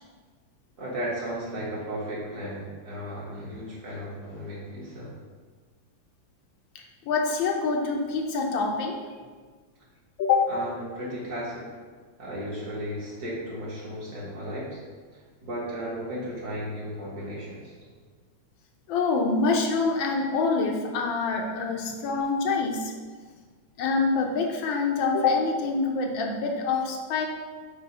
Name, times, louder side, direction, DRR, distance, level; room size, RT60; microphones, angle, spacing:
voice 1, 0.8-5.1 10.5-11.8 12.2-14.8 15.1-17.9 23.2-23.3, equal, 55° right, -7 dB, 2.1 m, -35 dB
voice 2, 6.7-9.0 10.2-10.5 18.9-22.9 23.8-27.3, left 4 dB, 85° left, 2 dB, 1.5 m, -26 dB
6.5 x 2.9 x 5.4 m, 1.5 s
omnidirectional pair, 2.1 m